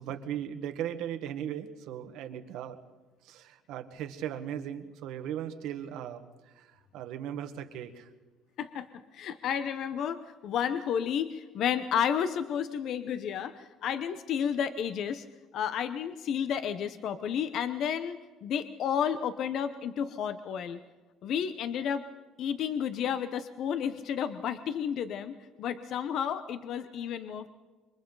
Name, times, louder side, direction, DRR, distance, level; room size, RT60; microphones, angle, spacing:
voice 1, 0.0-2.8 3.2-6.7 6.9-8.1, right 10 dB, 70° right, 7 dB, 1.6 m, -38 dB
voice 2, 9.1-15.2 15.5-20.8 21.2-22.0 22.4-27.5, left 8 dB, 50° left, 10 dB, 0.9 m, -31 dB
27.5 x 24.0 x 4.0 m, 1.2 s
cardioid pair, 160°, 0 cm